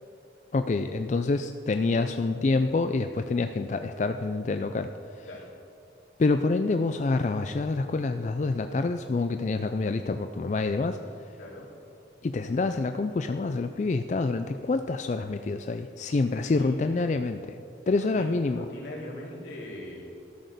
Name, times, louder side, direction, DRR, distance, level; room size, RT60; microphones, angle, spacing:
voice 1, 0.5-5.3 6.2-11.3 12.2-17.6 17.9-18.7, left 3 dB, 40° left, 8 dB, 0.3 m, -27 dB
voice 2, 16.4-17.2 18.0-20.1, left 1 dB, 85° left, -3 dB, 2.9 m, -42 dB
13.0 x 6.3 x 6.7 m, 2.5 s
head